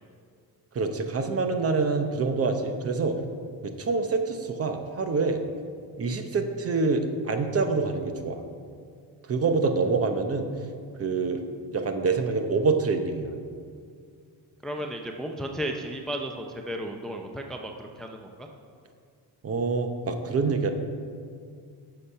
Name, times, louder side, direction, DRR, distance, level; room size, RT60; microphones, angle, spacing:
voice 1, 0.7-3.2 3.6-5.4 6.0-8.4 9.2-10.5 11.0-11.4 11.7-13.3 19.4-20.7, right 4 dB, 35° right, 7 dB, 0.8 m, -26 dB
voice 2, 14.6-18.5, equal, ahead, 3 dB, 0.5 m, -34 dB
10.0 x 6.8 x 5.6 m, 2.2 s
cardioid pair, 140°, 40 cm